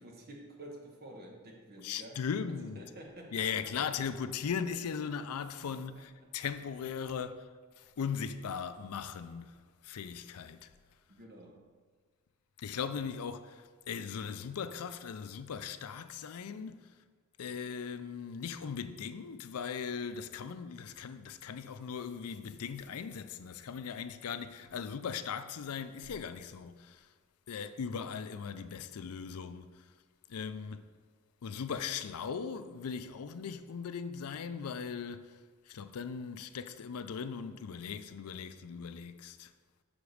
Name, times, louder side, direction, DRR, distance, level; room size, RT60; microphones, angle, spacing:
voice 1, 0.0-2.2 2.6-4.0 6.2-6.3 11.1-11.6, right 1 dB, 45° right, 1.3 m, -50 dB
voice 2, 1.8-2.8 3.3-7.5 7.8-10.7 12.6-16.9 17.4-27.1 27.5-29.8 30.3-30.8 31.4-35.3 35.7-39.5, left 6 dB, 85° left, 0.4 m, -39 dB
6.0 x 5.2 x 6.3 m
head